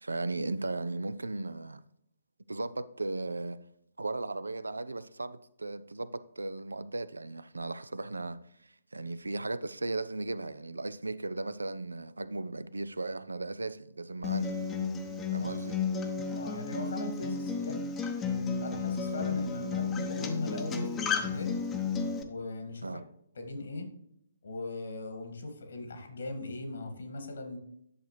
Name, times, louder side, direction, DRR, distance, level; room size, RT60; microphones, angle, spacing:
voice 1, 0.0-1.8 2.5-3.6 4.0-8.4 8.9-14.6 15.3-15.8 22.8-23.0, right 2 dB, 75° right, 0.4 m, -36 dB
Acoustic guitar, 14.2-22.2, left 5 dB, 15° left, 0.8 m, -33 dB
voice 2, 16.3-17.8 18.6-21.5 22.2-22.9 23.4-23.9 24.4-27.6, left 2 dB, 60° left, 2.0 m, -39 dB
11.0 x 6.8 x 3.2 m
figure-of-eight pair, 130°, 0 cm